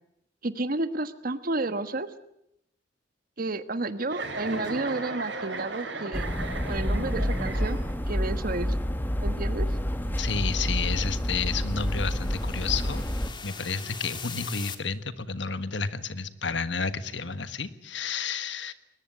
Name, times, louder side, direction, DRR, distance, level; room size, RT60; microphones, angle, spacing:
voice 1, 0.4-2.1 3.4-6.3 6.7-7.8 8.1-8.7 9.2-9.7, right 2 dB, 50° right, 11 dB, 1.4 m, -31 dB
Chuckle chortle, 4.1-8.1, right 3 dB, 85° right, 5.7 m, -36 dB
sound 1, 6.1-13.3, equal, 10° left, 1.4 m, -28 dB
sound 2, 9.5-14.8, left 5 dB, 25° left, 1.8 m, -43 dB
voice 2, 10.2-13.0 13.4-18.7, left 5 dB, 80° left, 12 dB, 1.5 m, -31 dB
21.5 x 19.5 x 9.2 m, 0.80 s
head